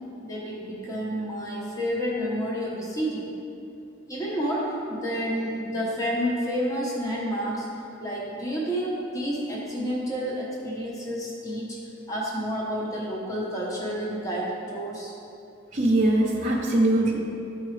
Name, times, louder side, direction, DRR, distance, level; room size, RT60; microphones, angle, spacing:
voice 1, 0.2-3.2 4.1-7.7 8.0-11.8 12.1-15.1, equal, 15° left, -5 dB, 1.1 m, -29 dB
voice 2, 15.7-17.2, right 1 dB, 40° right, -3 dB, 0.7 m, -21 dB
12.5 x 4.6 x 3.3 m, 2.7 s
head